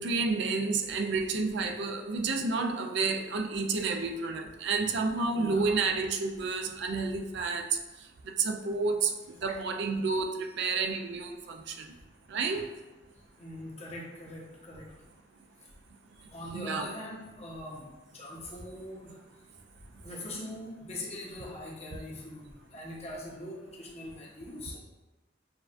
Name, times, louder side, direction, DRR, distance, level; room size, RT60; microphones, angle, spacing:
voice 1, 0.0-7.6 8.4-9.1 9.4-11.9 12.3-12.6 16.5-16.9, right 4 dB, 65° right, 5 dB, 0.4 m, -30 dB
voice 2, 5.3-5.7 9.4-9.6 12.5-12.6 13.4-14.8 16.3-17.9 18.1-19.1 20.0-22.4 22.7-24.8, left 1 dB, 35° left, -3 dB, 0.9 m, -42 dB
7.0 x 2.4 x 2.5 m, 1.1 s
head